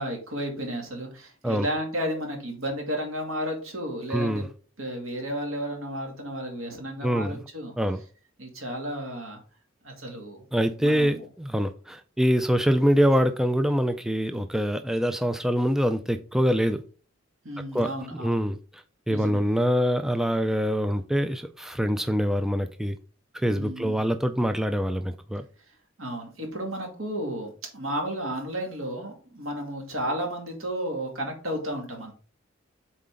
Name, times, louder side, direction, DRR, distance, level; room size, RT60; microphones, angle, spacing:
voice 1, 0.0-4.4 4.8-7.7 8.4-9.4 9.8-10.4 10.8-11.2 17.4-18.4 19.1-19.4 23.5-24.0 26.0-32.1, equal, 80° right, 1 dB, 2.2 m, -33 dB
voice 2, 4.1-4.5 7.0-7.4 7.8-8.0 10.5-16.8 17.7-17.9 18.2-23.0 23.3-25.4, equal, ahead, 9 dB, 0.3 m, -25 dB
7.7 x 4.2 x 3.7 m, 0.39 s
head